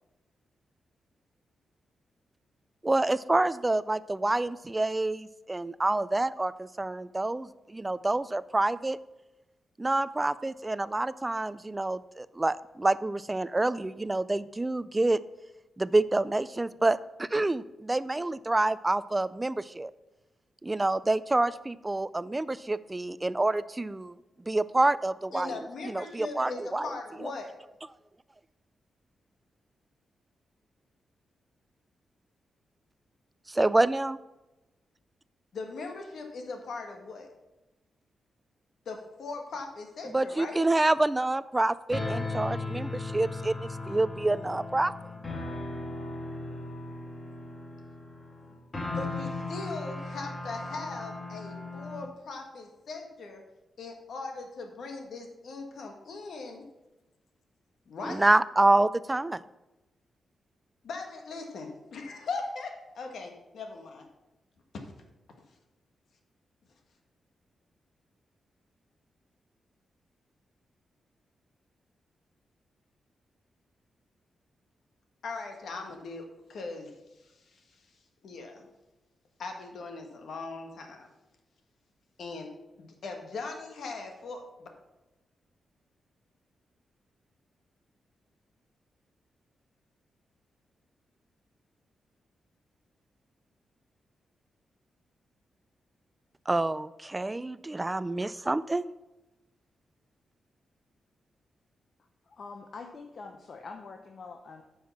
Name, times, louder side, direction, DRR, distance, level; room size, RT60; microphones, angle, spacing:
voice 1, 2.8-9.0 9.8-15.2 15.8-19.9 20.6-24.2 24.5-26.9 33.5-34.2 40.1-44.9 58.0-59.4 96.5-98.9, right 2 dB, 15° right, 16 dB, 0.3 m, -27 dB
voice 2, 25.3-27.5 35.5-37.3 38.8-40.6 48.9-53.4 53.8-56.7 57.9-58.3 60.8-64.1 64.7-64.8 75.2-77.9 78.2-78.7 79.4-81.1 82.2-82.5 82.8-84.7, left 3 dB, 70° left, 3 dB, 1.7 m, -39 dB
sound 1, 41.9-52.1, left 2 dB, 30° left, 1.8 m, -37 dB
voice 3, 102.3-104.6, left 4 dB, 50° left, 4 dB, 0.8 m, -44 dB
9.4 x 5.6 x 5.8 m, 1.0 s
wide cardioid pair, 120°, 0 cm